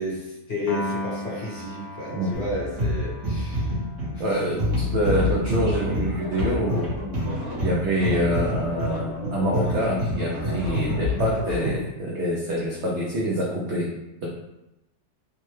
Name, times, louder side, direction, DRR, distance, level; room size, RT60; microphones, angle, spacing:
voice 1, 0.0-3.7, left 1 dB, 50° left, -7 dB, 0.9 m, -32 dB
Piano, 0.7-7.1, left 1 dB, 80° left, 1.1 m, -38 dB
sound 1, 2.3-11.9, left 1 dB, 55° right, 1.3 m, -27 dB
voice 2, 4.2-6.9 7.6-13.9 14.2-14.3, equal, 75° right, -3 dB, 0.6 m, -26 dB
sound 2, 5.0-11.7, equal, 25° right, 0.6 m, -35 dB
3.3 x 2.0 x 3.1 m, 0.94 s
omnidirectional pair, 1.7 m